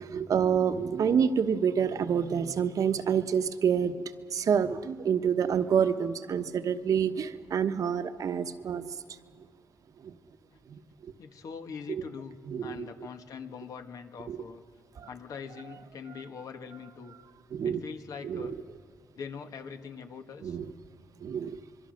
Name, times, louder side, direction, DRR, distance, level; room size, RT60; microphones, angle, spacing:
voice 1, 0.0-8.8 10.0-10.1 10.7-10.8 11.9-12.0 12.5-13.1 14.3-14.4 15.0-15.1 17.5-17.8 18.2-18.5 20.4-20.7 21.2-21.6, right 7 dB, 70° right, 9 dB, 1.1 m, -28 dB
voice 2, 11.2-12.3 12.6-14.6 15.1-17.1 17.6-18.5 19.2-20.6, left 6 dB, 75° left, 6 dB, 1.7 m, -42 dB
26.0 x 23.0 x 6.5 m, 2.3 s
cardioid pair, 75°, 6 cm